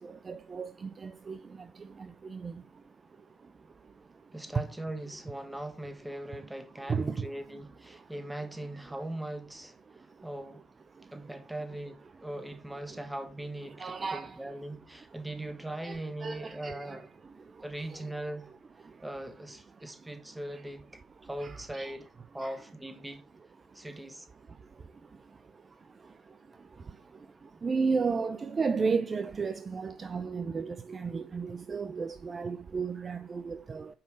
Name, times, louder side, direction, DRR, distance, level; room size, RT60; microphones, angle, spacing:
voice 1, 0.0-4.4 6.8-7.6 7.8-8.1 8.7-8.9 9.9-10.3 10.9-11.3 12.9-13.0 13.7-14.4 15.1-15.2 15.8-18.1 18.8-19.0 19.7-20.1 20.5-20.6 21.2-22.0 22.4-22.6 23.6-24.0 24.5-33.9, right 5 dB, 30° right, 0.5 m, -36 dB
voice 2, 4.3-10.6 11.1-17.1 17.6-18.5 19.0-22.1 22.3-23.2 23.7-24.3, right 1 dB, 10° right, 1.3 m, -40 dB
7.1 x 5.2 x 4.8 m
supercardioid pair, 80°, 0 cm